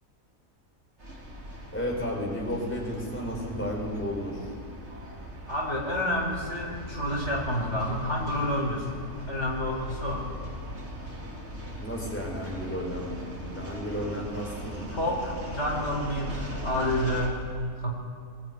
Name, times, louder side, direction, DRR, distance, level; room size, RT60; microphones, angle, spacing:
sound 1, 1.0-17.3, equal, 45° right, 3.9 m, -39 dB
voice 1, 1.7-4.5 11.8-13.1 13.4-14.9, equal, 5° left, -1 dB, 4.7 m, -33 dB
voice 2, 5.5-8.9 9.3-10.3 14.9-17.4 17.8-17.9, left 1 dB, 45° left, -1 dB, 5.0 m, -29 dB
22.5 x 20.5 x 9.5 m, 2.2 s
omnidirectional pair, 1.6 m